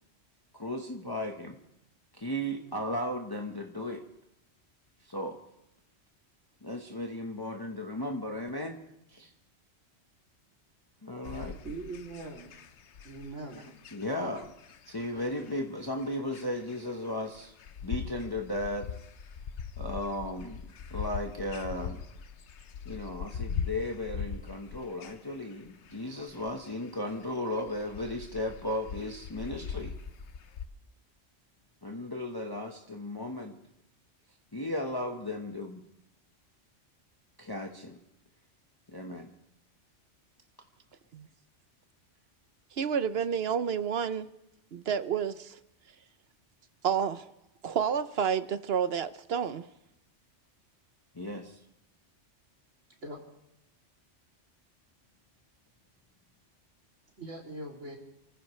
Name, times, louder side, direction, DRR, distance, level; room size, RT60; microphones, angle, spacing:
voice 1, 0.5-1.6 2.1-4.0 5.1-5.4 6.6-8.8 9.1-9.3 11.0-11.6 13.6-13.7 13.9-14.5 14.9-17.5 17.8-18.9 19.8-20.6 20.9-22.0 22.8-29.9 31.8-33.6 34.5-35.8 37.4-38.0 38.9-39.3 51.1-51.6, left 1 dB, 20° left, 1.2 m, -35 dB
sound 1, 11.2-30.7, left 6 dB, 70° left, 1.1 m, -41 dB
voice 2, 11.6-12.5 13.0-13.7 53.0-53.2 57.2-58.0, right 2 dB, 90° right, 3.3 m, -41 dB
voice 3, 42.8-44.3 44.7-45.6 46.8-47.3 47.6-49.7, right 7 dB, 60° right, 0.9 m, -30 dB
29.5 x 15.0 x 3.2 m
omnidirectional pair, 1.2 m